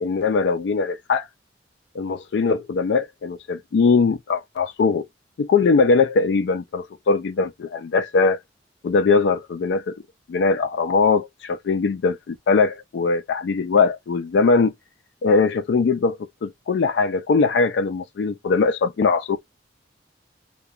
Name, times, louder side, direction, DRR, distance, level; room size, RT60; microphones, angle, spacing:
voice 1, 0.0-1.3 1.9-5.1 5.4-8.4 8.8-10.0 10.3-14.7 15.2-19.4, left 4 dB, 75° left, 0.3 m, -21 dB
2.7 x 2.2 x 2.4 m
head